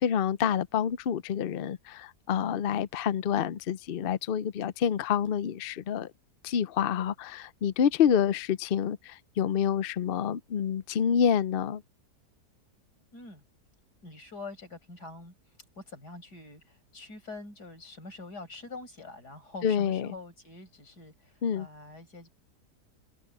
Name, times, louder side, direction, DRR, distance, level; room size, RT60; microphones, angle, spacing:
voice 1, 0.0-6.1 6.4-11.8 19.6-20.1 21.4-21.7, left 8 dB, 65° left, 0.5 m, -27 dB
voice 2, 13.1-13.4 14.0-15.3 15.7-22.3, left 3 dB, 80° left, 6.8 m, -45 dB
omnidirectional pair, 1.7 m